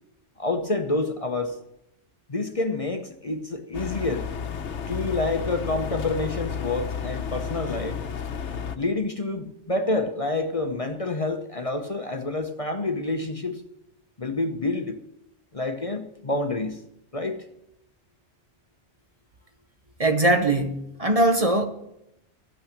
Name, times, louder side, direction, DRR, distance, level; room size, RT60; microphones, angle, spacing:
voice 1, 0.4-1.6 2.3-4.3 4.9-8.0 8.8-13.6 14.2-15.0 15.5-16.8 17.1-17.4, left 2 dB, 30° left, 1.0 m, -28 dB
sound 1, 3.7-8.8, left 7 dB, 80° left, 1.2 m, -32 dB
voice 2, 20.0-21.7, right 2 dB, 35° right, 1.0 m, -21 dB
15.0 x 8.9 x 6.7 m
omnidirectional pair, 1.2 m